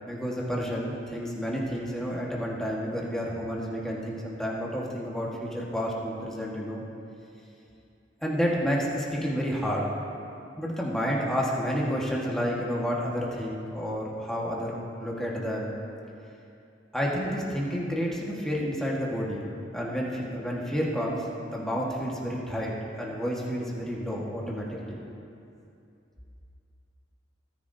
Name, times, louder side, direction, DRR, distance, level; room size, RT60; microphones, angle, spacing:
voice 1, 0.1-6.8 8.2-9.9 10.6-15.7 16.9-19.5 19.7-21.3 21.5-25.0, equal, 5° left, -4 dB, 1.4 m, -30 dB
18.0 x 10.0 x 2.7 m, 2.6 s
head